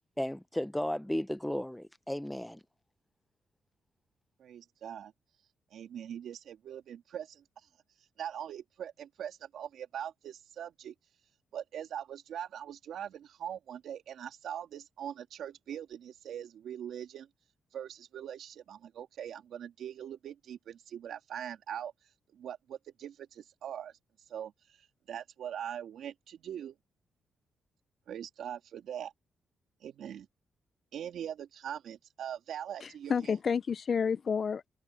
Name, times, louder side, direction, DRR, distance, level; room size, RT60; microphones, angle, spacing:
voice 1, 0.2-2.6, left 1 dB, 5° left, 0.7 m, -34 dB
voice 2, 4.4-5.1 5.7-7.4 8.2-10.9 11.5-17.3 17.7-21.9 22.3-23.9 24.3-24.5 25.1-26.8 28.1-29.1 29.8-30.3 30.9-33.1, right 9 dB, 80° right, 3.1 m, -42 dB
voice 3, 32.8-34.7, left 6 dB, 45° left, 0.7 m, -30 dB
cardioid pair, 105°, 0 cm